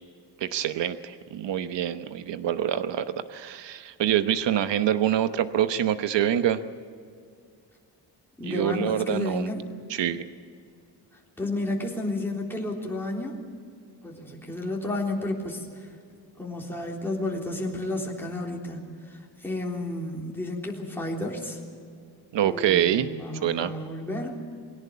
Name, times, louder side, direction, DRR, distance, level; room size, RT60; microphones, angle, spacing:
voice 1, 0.4-6.6 8.4-9.5 9.9-10.2 22.3-23.1 23.4-23.7, right 10 dB, 90° right, 10 dB, 1.0 m, -25 dB
voice 2, 8.4-9.6 11.4-13.4 14.0-15.9 16.4-18.8 19.1-21.6 22.4-24.4, left 1 dB, 5° left, -2 dB, 3.5 m, -32 dB
22.0 x 17.5 x 8.5 m, 2.2 s
wide cardioid pair, 145°, 42 cm